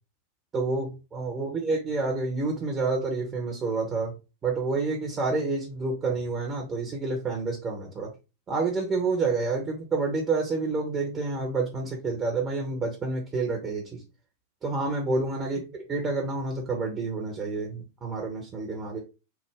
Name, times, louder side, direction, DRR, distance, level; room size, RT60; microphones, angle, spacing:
voice 1, 0.5-4.1 4.4-8.1 8.5-14.0 14.6-19.0, right 3 dB, 25° right, 0 dB, 1.0 m, -29 dB
3.6 x 2.1 x 3.3 m, 0.29 s
figure-of-eight pair, 90°, 0 cm